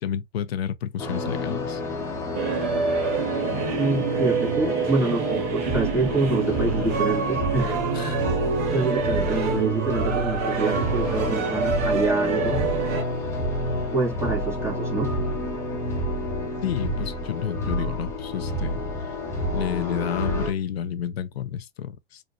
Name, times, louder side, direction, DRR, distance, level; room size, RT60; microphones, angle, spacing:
voice 1, 0.0-1.8 7.9-8.2 16.6-18.8 19.5-22.2, left 9 dB, 65° left, 0.7 m, -30 dB
sound 1, 1.0-20.5, left 1 dB, 10° left, 1.4 m, -29 dB
sound 2, 2.3-13.0, right 5 dB, 45° right, 1.5 m, -27 dB
voice 2, 3.7-7.8 8.7-12.6 13.9-15.1, right 3 dB, 10° right, 2.0 m, -26 dB
4.2 x 2.6 x 2.7 m
figure-of-eight pair, 100°, 34 cm